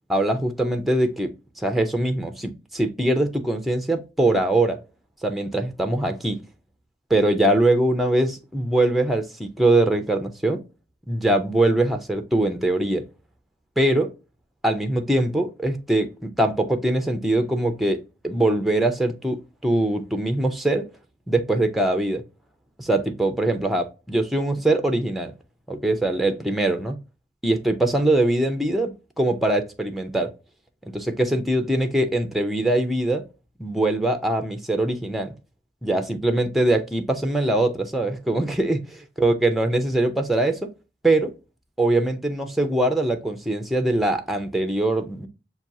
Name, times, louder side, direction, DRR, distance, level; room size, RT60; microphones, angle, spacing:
voice 1, 0.1-1.3 1.6-4.8 5.2-6.4 7.1-10.6 11.1-13.0 13.8-14.1 14.6-18.0 18.2-20.9 21.3-22.2 22.8-25.3 25.7-27.0 27.4-28.9 29.2-30.3 30.9-33.2 33.6-35.3 35.8-40.7 41.0-41.3 41.8-45.3, right 1 dB, ahead, 0.5 m, -22 dB
5.9 x 2.3 x 2.6 m
head